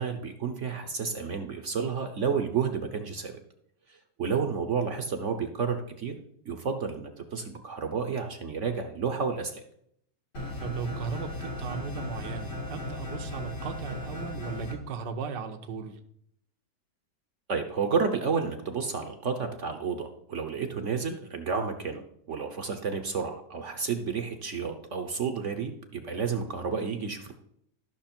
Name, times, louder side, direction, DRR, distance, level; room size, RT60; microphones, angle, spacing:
voice 1, 0.0-3.3 3.9-6.1 6.5-9.6 17.5-27.3, right 5 dB, 55° right, 6 dB, 1.0 m, -31 dB
sound 1, 10.3-14.7, left 1 dB, 80° left, 3.9 m, -36 dB
voice 2, 10.6-16.0, right 6 dB, 75° right, 7 dB, 1.5 m, -36 dB
13.0 x 6.1 x 4.4 m, 0.71 s
omnidirectional pair, 1.9 m